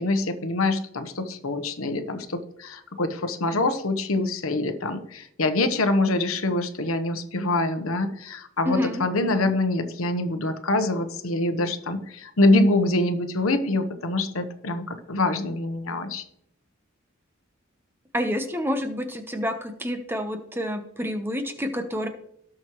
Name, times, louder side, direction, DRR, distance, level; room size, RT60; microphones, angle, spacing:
voice 1, 0.0-16.2, left 2 dB, 80° left, 9 dB, 1.0 m, -25 dB
voice 2, 8.6-9.0 9.4-9.5 18.1-22.1, equal, 10° right, 7 dB, 0.9 m, -28 dB
18.0 x 6.2 x 3.1 m, 0.74 s
head